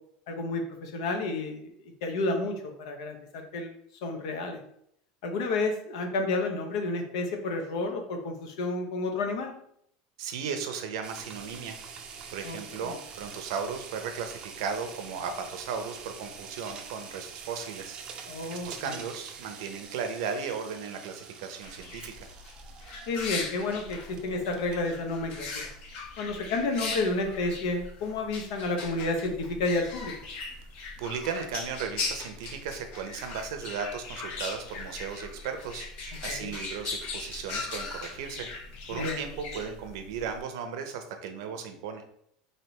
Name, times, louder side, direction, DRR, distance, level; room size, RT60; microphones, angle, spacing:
voice 1, 0.3-1.7 2.0-3.7 4.0-4.6 5.2-9.5 12.4-12.9 18.3-19.0 23.1-25.5 26.2-30.1 36.3-36.5 38.9-39.2, left 2 dB, 80° left, 4 dB, 0.8 m, -31 dB
voice 2, 10.2-11.8 12.3-22.3 30.8-38.5 38.9-42.0, right 6 dB, 75° right, 7 dB, 0.6 m, -36 dB
sound 1, 11.0-24.9, right 6 dB, 30° right, 0.5 m, -45 dB
sound 2, 21.6-40.4, left 4 dB, 50° left, 0.9 m, -39 dB
4.0 x 3.3 x 2.9 m, 0.71 s
supercardioid pair, 145°, 3 cm